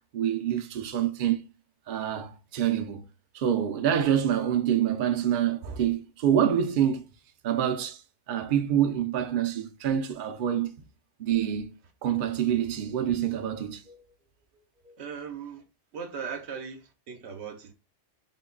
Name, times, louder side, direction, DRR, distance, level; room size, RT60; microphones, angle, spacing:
voice 1, 0.1-1.4 1.9-3.0 3.3-7.1 7.4-10.8 11.2-11.7 12.0-14.0 14.8-14.9, right 9 dB, 60° right, 0.6 m, -26 dB
voice 2, 15.0-15.6 15.9-17.7, right 6 dB, 80° right, 1.0 m, -38 dB
3.6 x 2.2 x 3.7 m
omnidirectional pair, 1.1 m